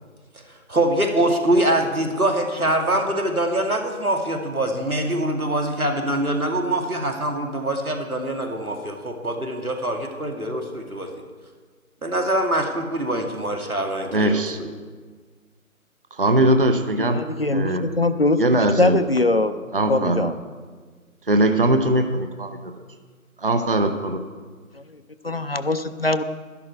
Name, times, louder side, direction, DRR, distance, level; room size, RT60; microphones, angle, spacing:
voice 1, 0.5-11.1 12.0-14.7, right 1 dB, 90° right, 3 dB, 2.4 m, -24 dB
voice 2, 14.1-14.6 16.1-17.2 17.5-17.9 18.4-19.0 19.7-20.3 21.3-22.7 23.4-24.2, right 1 dB, 40° right, 8 dB, 0.7 m, -20 dB
voice 3, 17.0-17.7 18.0-18.4 18.8-19.5 19.9-20.3 25.2-26.2, left 2 dB, 45° left, 10 dB, 0.6 m, -21 dB
12.5 x 11.0 x 4.6 m, 1.5 s
figure-of-eight pair, 160°, 42 cm